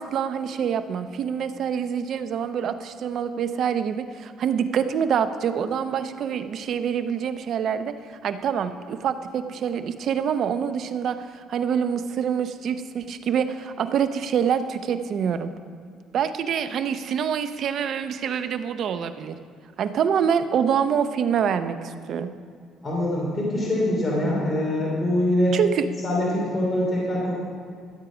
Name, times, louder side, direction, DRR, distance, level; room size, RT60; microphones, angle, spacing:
voice 1, 0.0-15.5 16.1-19.4 19.8-22.3 25.5-25.9, right 7 dB, 55° right, 10 dB, 0.6 m, -26 dB
voice 2, 22.8-25.6 26.0-27.3, left 1 dB, 20° left, -5 dB, 2.8 m, -24 dB
13.5 x 8.3 x 5.0 m, 2.2 s
cardioid pair, 115°, 0 cm